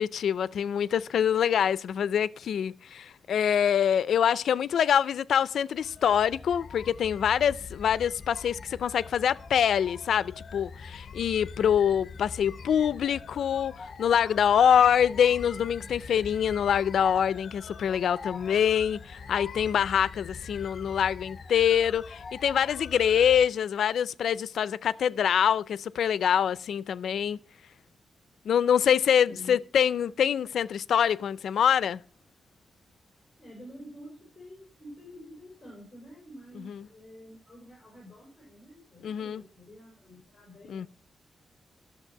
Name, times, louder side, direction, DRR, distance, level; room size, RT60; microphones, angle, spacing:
voice 1, 0.0-27.4 28.4-32.0 36.6-36.9 39.0-39.4 40.7-40.9, left 8 dB, 85° left, 0.4 m, -25 dB
sound 1, 5.7-23.5, left 5 dB, 45° left, 0.8 m, -43 dB
voice 2, 29.2-29.6 33.4-40.9, equal, 15° left, 4.4 m, -48 dB
12.0 x 6.6 x 5.7 m
wide cardioid pair, 180°, 0 cm